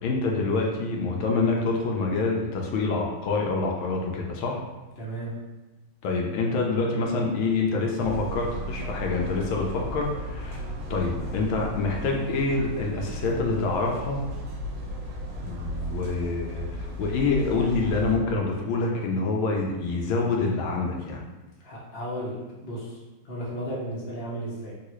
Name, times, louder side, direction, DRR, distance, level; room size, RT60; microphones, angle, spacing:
voice 1, 0.0-4.6 6.0-10.6 10.9-14.2 15.4-21.2, left 3 dB, 80° left, 0 dB, 1.3 m, -26 dB
voice 2, 5.0-5.3 21.6-23.0 23.2-24.7, right 1 dB, 55° left, -6 dB, 0.6 m, -34 dB
sound 1, 8.0-18.2, equal, 75° right, 1.2 m, -35 dB
3.7 x 2.3 x 3.0 m, 1.1 s
omnidirectional pair, 2.3 m